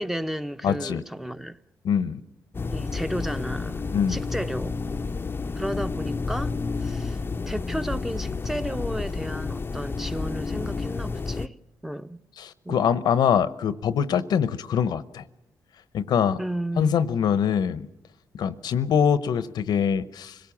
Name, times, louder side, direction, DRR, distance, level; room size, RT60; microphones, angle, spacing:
voice 1, 0.0-1.6 2.7-4.8 5.6-6.5 6.8-7.2 7.5-11.6 11.8-12.2 12.6-12.8 16.4-17.0, right 1 dB, 5° right, 0.9 m, -33 dB
voice 2, 0.6-1.0 1.8-2.2 3.9-4.2 12.4-15.2 15.9-16.4 16.8-17.9 18.3-20.4, left 8 dB, 75° left, 0.9 m, -24 dB
sound 1, 2.5-11.5, left 4 dB, 30° left, 0.7 m, -30 dB
25.0 x 17.5 x 7.2 m
cardioid pair, 85°, 7 cm